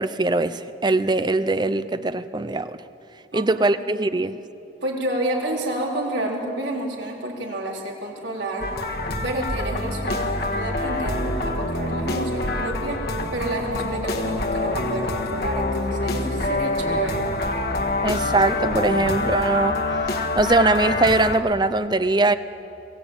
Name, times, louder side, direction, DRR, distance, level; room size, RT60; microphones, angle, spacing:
voice 1, 0.0-2.8 3.3-4.4 18.0-22.4, right 2 dB, 25° right, 13 dB, 0.6 m, -21 dB
voice 2, 4.8-8.7 9.2-13.1 13.3-17.3, right 1 dB, 80° right, -1 dB, 3.8 m, -29 dB
sound 1, 8.6-21.4, left 2 dB, 55° left, 1.6 m, -26 dB
22.0 x 17.0 x 8.8 m, 2.7 s
head